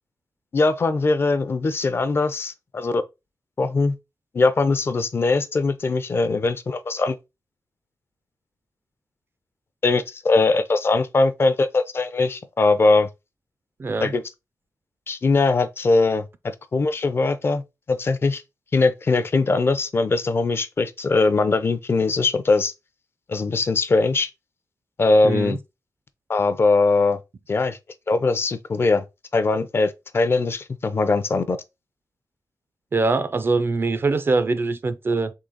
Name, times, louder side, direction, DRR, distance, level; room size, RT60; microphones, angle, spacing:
voice 1, 0.5-3.0 3.6-3.9 4.3-7.2 9.8-13.1 14.0-14.2 15.1-16.3 16.7-17.6 17.9-18.4 18.7-22.7 23.3-24.3 25.0-25.6 26.3-27.2 27.5-27.8 28.1-29.0 29.3-31.6, left 3 dB, 35° left, 0.5 m, -21 dB
voice 2, 13.8-14.1 25.2-25.6 32.9-35.3, right 3 dB, 35° right, 0.3 m, -23 dB
3.7 x 3.1 x 3.9 m
wide cardioid pair, 140°, 7 cm